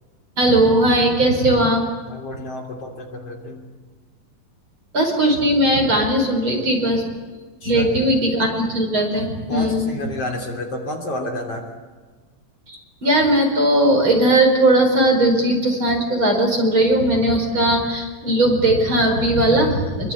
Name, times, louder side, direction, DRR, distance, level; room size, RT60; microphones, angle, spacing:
voice 1, 0.4-1.8 4.9-7.0 7.7-9.9 12.7-20.1, right 1 dB, 35° right, 3 dB, 5.5 m, -18 dB
voice 2, 2.1-3.6 7.6-7.9 9.5-11.6, left 1 dB, 45° left, 1 dB, 4.1 m, -30 dB
27.0 x 24.0 x 8.7 m, 1.4 s
omnidirectional pair, 4.0 m